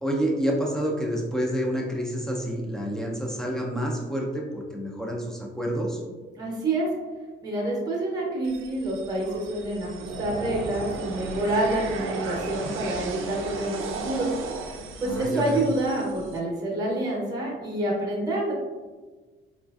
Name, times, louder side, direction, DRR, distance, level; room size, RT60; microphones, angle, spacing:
voice 1, 0.0-6.0 15.0-15.6, equal, 5° left, -1 dB, 0.5 m, -28 dB
voice 2, 6.3-6.9 7.4-14.4 15.0-18.5, right 1 dB, 20° right, -3 dB, 0.8 m, -27 dB
sound 1, 8.4-16.4, right 4 dB, 75° right, 0.5 m, -36 dB
4.2 x 2.5 x 2.3 m, 1.3 s
cardioid pair, 150°, 21 cm